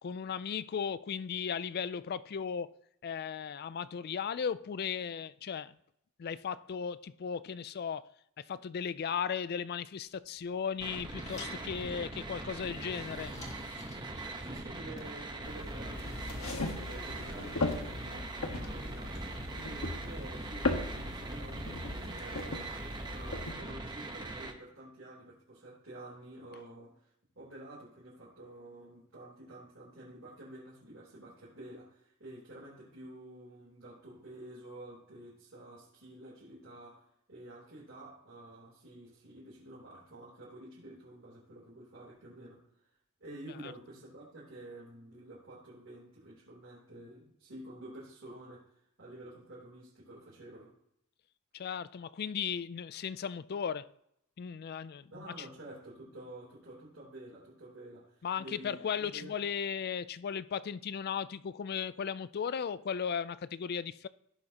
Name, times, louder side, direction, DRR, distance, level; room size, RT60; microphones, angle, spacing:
voice 1, 0.0-5.7 6.2-8.1 8.4-13.3 43.6-43.7 51.5-53.9 54.4-55.1 55.4-55.5 58.2-64.1, left 7 dB, 50° left, 0.4 m, -36 dB
sound 1, 10.4-15.4, left 2 dB, 35° left, 1.8 m, -52 dB
sound 2, 10.8-24.5, right 2 dB, 20° right, 1.1 m, -42 dB
voice 2, 14.1-17.5 17.8-22.8 23.1-27.1 27.3-42.6 43.2-50.7 55.1-59.4, right 1 dB, 65° right, 3.4 m, -50 dB
sound 3, 15.4-23.5, left 2 dB, 90° left, 1.5 m, -38 dB
16.0 x 6.4 x 2.9 m
head